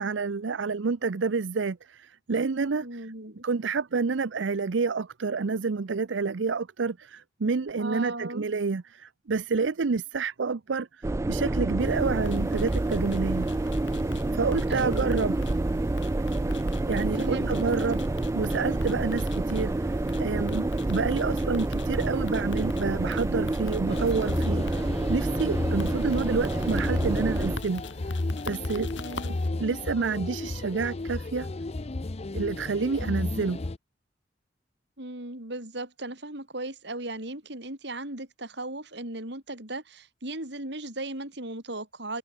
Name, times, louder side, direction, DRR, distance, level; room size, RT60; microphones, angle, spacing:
voice 1, 0.0-3.0 3.4-13.5 14.3-15.3 16.9-18.0 18.3-27.8 28.4-28.9 29.3-31.5 32.3-33.6, right 4 dB, 90° right, 0.6 m, -29 dB
voice 2, 2.8-3.4 7.8-8.5 14.7-15.2 17.2-17.8 28.8-29.4 35.0-42.2, right 2 dB, 65° right, 6.7 m, -37 dB
sound 1, 11.0-27.6, right 2 dB, 15° right, 0.3 m, -28 dB
sound 2, 11.8-29.5, left 2 dB, 85° left, 6.3 m, -43 dB
sound 3, 23.9-33.8, left 2 dB, 35° left, 0.6 m, -33 dB
head